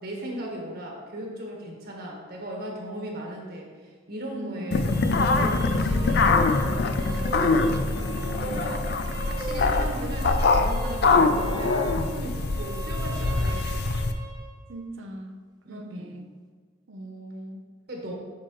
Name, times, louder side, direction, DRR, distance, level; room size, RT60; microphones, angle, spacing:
voice 1, 0.0-6.5 6.9-8.8 9.2-13.8 15.6-16.2 17.9-18.1, right 1 dB, 55° right, -1 dB, 1.5 m, -37 dB
voice 2, 4.3-4.7 7.3-8.7 14.7-15.4 15.7-16.2 16.9-17.7, right 1 dB, 80° right, 5 dB, 0.8 m, -40 dB
sound 1, 4.6-14.5, right 3 dB, 20° right, 0.8 m, -38 dB
sound 2, 4.7-14.1, left 3 dB, 60° left, 0.5 m, -24 dB
8.3 x 6.3 x 3.1 m, 1.5 s
head